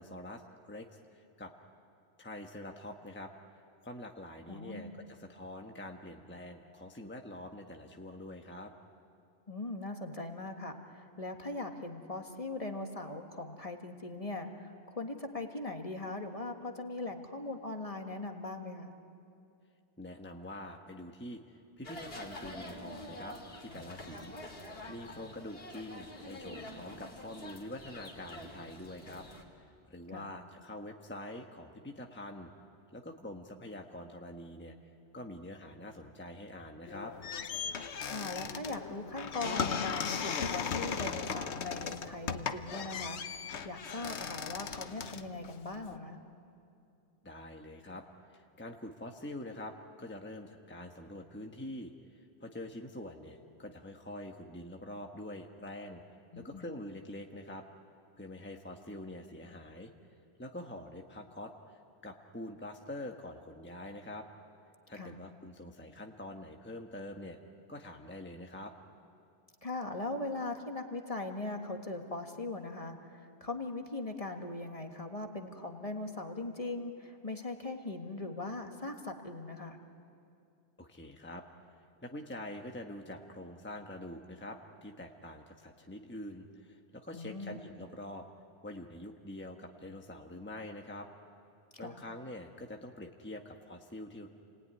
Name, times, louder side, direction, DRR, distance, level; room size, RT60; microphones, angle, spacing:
voice 1, 0.0-1.5 2.2-3.3 3.8-8.7 20.0-24.3 24.6-29.2 29.6-32.5 32.9-34.7 35.1-37.1 47.2-48.0 48.3-56.0 56.3-57.6 58.2-59.9 60.4-64.3 64.9-67.4 67.7-68.7 80.8-81.4 82.0-88.2 88.6-91.1 91.8-94.3, left 1 dB, 10° left, 2 dB, 1.2 m, -45 dB
voice 2, 4.5-5.0 9.5-18.9 30.1-30.3 38.1-46.2 56.3-56.6 64.9-65.1 69.6-79.8 87.1-87.6 91.8-92.0, left 2 dB, 30° left, 4 dB, 1.7 m, -40 dB
sound 1, 21.8-29.4, left 1 dB, 60° left, 2.9 m, -47 dB
sound 2, 36.9-46.0, left 6 dB, 80° left, 1.2 m, -37 dB
29.0 x 19.5 x 9.7 m, 2.5 s
omnidirectional pair, 1.1 m